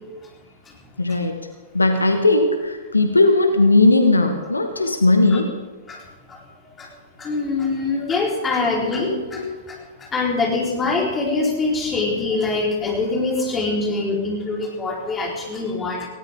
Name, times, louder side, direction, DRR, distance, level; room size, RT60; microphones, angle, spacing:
voice 1, 1.0-1.4 1.7-5.5 9.0-9.5, left 2 dB, 80° left, 6 dB, 1.4 m, -18 dB
voice 2, 7.2-9.4 10.1-16.1, left 3 dB, 15° left, -2 dB, 4.1 m, -23 dB
19.0 x 17.0 x 3.7 m, 1.3 s
figure-of-eight pair, 105°, 0 cm